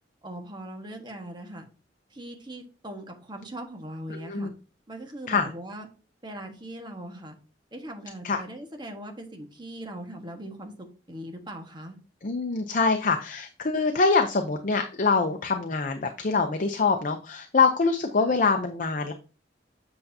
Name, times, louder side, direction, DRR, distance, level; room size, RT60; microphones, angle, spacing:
voice 1, 0.2-1.6 2.1-4.5 4.9-5.9 6.2-7.3 7.7-10.7 11.1-12.0 18.2-18.4, right 1 dB, 25° right, 3 dB, 1.5 m, -40 dB
voice 2, 4.1-4.5 5.3-5.5 8.2-8.4 12.2-19.1, left 4 dB, 50° left, 6 dB, 0.7 m, -24 dB
8.2 x 6.6 x 2.8 m, 0.35 s
head